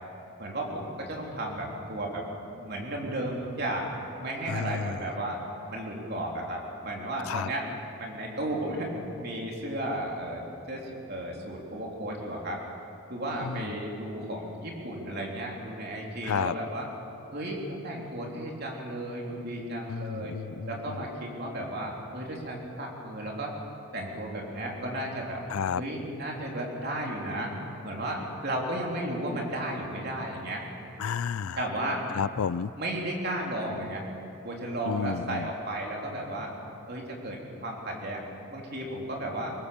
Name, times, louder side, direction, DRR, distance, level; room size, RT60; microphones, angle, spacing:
voice 1, 0.4-2.3 2.5-3.9 4.2-5.4 5.7-7.6 8.0-8.9 9.2-12.6 13.1-16.9 17.3-20.3 20.7-23.5 23.9-25.4 25.7-27.5 27.8-30.6 31.6-32.0 32.8-34.0 34.4-36.5 36.9-38.2 38.5-39.5, right 1 dB, 45° right, -1 dB, 3.7 m, -34 dB
voice 2, 4.5-5.0 7.3-7.5 13.4-13.8 16.2-16.5 19.9-20.7 25.5-25.8 31.0-31.6 32.1-32.7 34.9-35.5, left 7 dB, 80° left, 19 dB, 0.4 m, -31 dB
23.0 x 19.0 x 7.1 m, 2.8 s
head